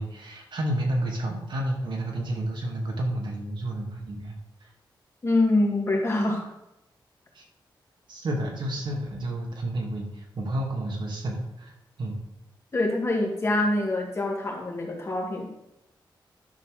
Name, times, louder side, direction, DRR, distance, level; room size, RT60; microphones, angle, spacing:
voice 1, 0.0-4.3 4.6-4.7 7.3-7.4 8.1-12.2, right 1 dB, 65° right, 0 dB, 2.1 m, -30 dB
voice 2, 5.2-6.5 12.7-15.5, left 2 dB, 30° left, 0 dB, 2.1 m, -25 dB
10.5 x 4.3 x 6.5 m, 0.87 s
wide cardioid pair, 110°, 8 cm